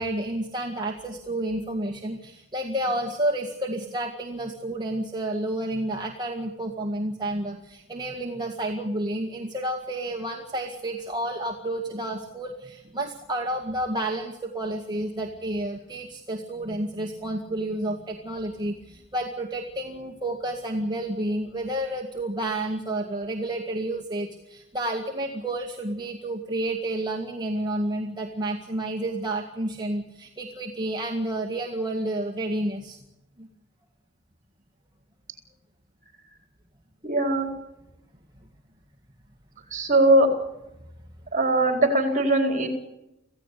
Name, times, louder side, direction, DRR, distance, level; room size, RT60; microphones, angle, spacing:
voice 1, 0.0-33.0 33.4-33.5, right 1 dB, 20° right, 1 dB, 2.0 m, -30 dB
voice 2, 37.0-37.5 39.7-40.3 41.3-42.7, right 1 dB, 40° right, 4 dB, 4.1 m, -20 dB
26.5 x 16.5 x 8.4 m, 0.93 s
head